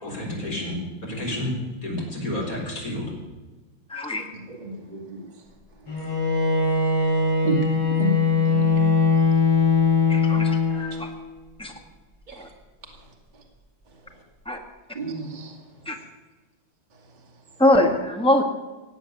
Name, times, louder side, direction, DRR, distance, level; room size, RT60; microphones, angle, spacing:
voice 1, 0.0-3.1, left 1 dB, 45° left, -1 dB, 4.8 m, -30 dB
voice 2, 3.9-4.2 10.1-11.1 11.6-11.7 12.4-12.5 14.4-14.6 15.8-15.9 17.6-18.4, left 1 dB, 5° left, 3 dB, 1.6 m, -22 dB
voice 3, 4.5-5.3 6.0-6.1 6.6-6.8 7.4-8.8 9.1-9.2 12.3-12.5 13.3-13.4 14.1-14.2 14.9-15.6, right 2 dB, 20° right, 0 dB, 2.3 m, -31 dB
Bowed string instrument, 5.9-11.2, left 4 dB, 70° left, 7.7 m, -21 dB
18.5 x 7.9 x 9.2 m, 1.2 s
omnidirectional pair, 2.1 m